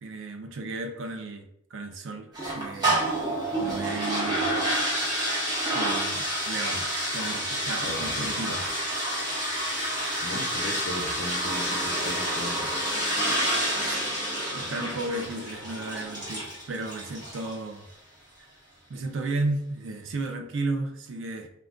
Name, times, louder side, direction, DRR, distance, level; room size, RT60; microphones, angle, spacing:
voice 1, 0.0-3.0 3.6-4.5 5.7-8.7 13.9-14.0 14.5-17.9 18.4-18.5 18.9-21.5, right 2 dB, 80° right, 5 dB, 0.4 m, -34 dB
sound 1, 2.3-17.6, right 1 dB, 20° right, 0.9 m, -29 dB
voice 2, 7.8-8.7 10.2-12.8, left 2 dB, 60° left, 1 dB, 0.6 m, -37 dB
2.3 x 2.2 x 3.6 m, 0.77 s
head